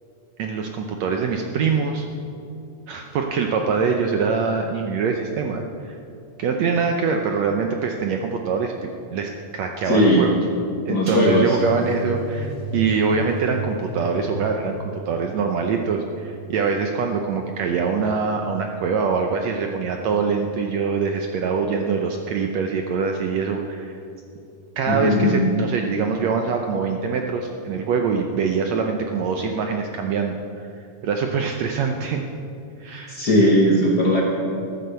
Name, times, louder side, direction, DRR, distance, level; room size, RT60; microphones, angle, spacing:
voice 1, 0.4-2.1 2.9-6.0 6.4-10.5 10.9-14.7 15.1-24.0 24.8-32.2 32.8-33.2, right 5 dB, 75° right, 3 dB, 1.6 m, -24 dB
voice 2, 9.8-10.2 10.9-11.6 24.9-25.5 33.1-34.2, left 1 dB, 55° left, -3 dB, 1.1 m, -18 dB
sound 1, 11.1-18.1 18.5-18.8 19.1-19.2, right 2 dB, 40° right, 1.7 m, -33 dB
14.0 x 11.5 x 6.9 m, 2.6 s
omnidirectional pair, 4.0 m